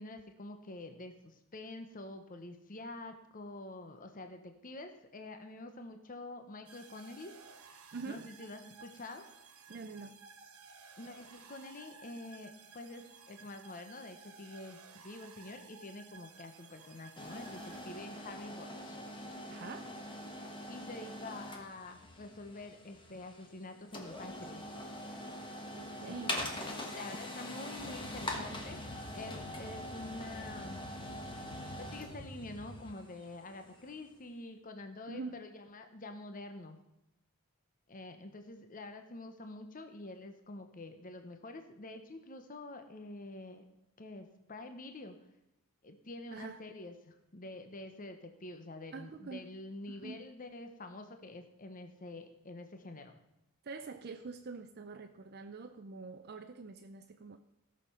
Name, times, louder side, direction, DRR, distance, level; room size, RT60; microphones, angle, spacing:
voice 1, 0.0-7.4 8.1-9.2 11.0-19.0 20.7-24.6 26.0-30.8 31.8-36.8 37.9-43.6 44.0-45.2 45.8-53.1, left 2 dB, 40° left, 7 dB, 0.9 m, -47 dB
sound 1, 6.7-18.5, right 5 dB, 80° right, 1.4 m, -56 dB
voice 2, 7.9-8.3 9.7-10.2 19.5-20.0 25.7-26.4 35.1-35.4 46.3-46.6 48.9-49.5 49.9-50.2 53.6-57.4, right 4 dB, 45° right, 7 dB, 0.5 m, -45 dB
sound 2, 17.2-34.0, left 1 dB, 20° left, 1.4 m, -44 dB
Boat Water vehicle, 27.8-32.8, left 1 dB, 65° left, 1.3 m, -49 dB
16.0 x 6.6 x 5.6 m, 0.87 s
head